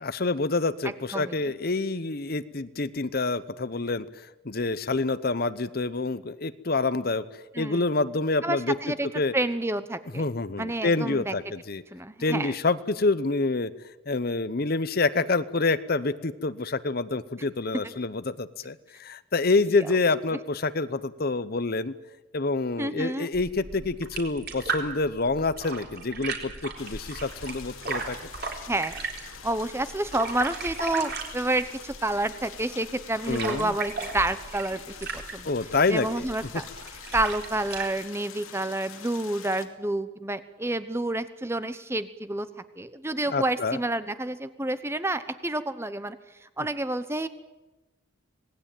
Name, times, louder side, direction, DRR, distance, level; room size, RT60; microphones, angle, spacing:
voice 1, 0.0-4.1 4.4-7.2 7.6-9.3 10.2-11.8 12.2-13.7 14.1-21.9 22.3-28.2 33.3-33.7 35.4-36.2 43.3-43.8, left 3 dB, 45° left, 15 dB, 0.9 m, -27 dB
voice 2, 8.4-9.1 9.3-10.2 10.6-11.4 11.9-12.5 19.7-19.8 22.8-23.3 28.7-35.5 35.9-36.6 37.1-42.5 42.8-46.2 46.6-47.3, right 2 dB, 10° right, 12 dB, 0.9 m, -29 dB
sound 1, 23.3-37.9, right 4 dB, 50° right, 3.9 m, -37 dB
sound 2, 26.8-39.7, left 8 dB, 85° left, 2.7 m, -45 dB
26.0 x 19.0 x 9.1 m, 1.1 s
head